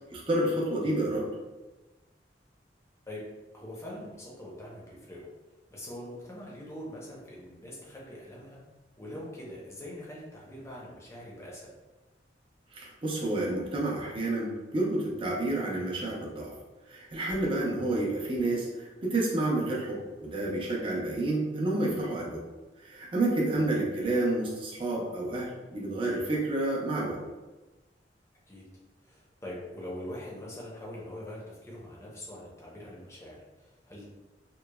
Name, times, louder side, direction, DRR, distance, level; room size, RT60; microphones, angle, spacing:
voice 1, 0.1-1.3 12.7-16.5 16.9-22.4 22.8-27.2, right 2 dB, 30° right, -4 dB, 0.5 m, -29 dB
voice 2, 3.5-5.3 5.7-8.6 9.0-11.7 23.5-23.6 28.5-28.6 29.0-34.0, left 1 dB, 15° left, -5 dB, 0.6 m, -43 dB
3.0 x 2.1 x 2.2 m, 1.2 s
head